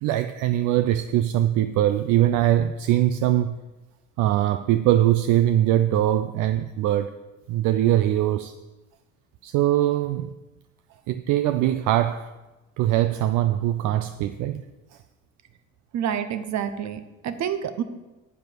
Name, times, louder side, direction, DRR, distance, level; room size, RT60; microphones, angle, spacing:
voice 1, 0.0-3.6 4.2-7.1 7.5-8.5 9.4-10.3 11.1-12.3 12.8-14.6, right 12 dB, 75° right, 0.5 m, -22 dB
voice 2, 15.9-17.8, right 8 dB, 60° right, 1.0 m, -28 dB
10.0 x 8.3 x 4.7 m
supercardioid pair, 85°, 31 cm